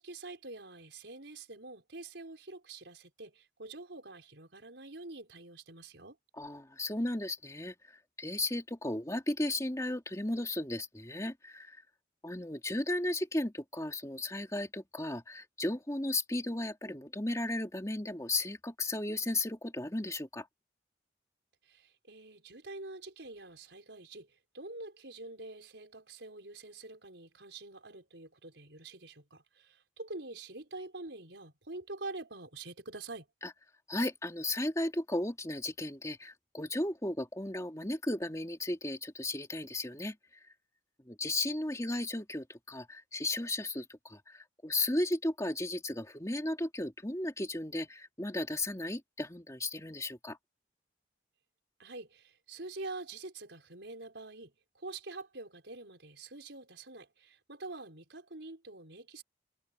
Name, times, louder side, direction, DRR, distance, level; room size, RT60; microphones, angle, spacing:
voice 1, 0.0-6.2 21.6-24.3 24.5-33.3 51.8-59.2, right 2 dB, 70° right, 4.8 m, -46 dB
voice 2, 6.4-7.7 8.2-11.8 12.2-20.5 33.4-33.5 33.9-40.4 41.1-50.4, left 2 dB, 15° left, 2.8 m, -35 dB
head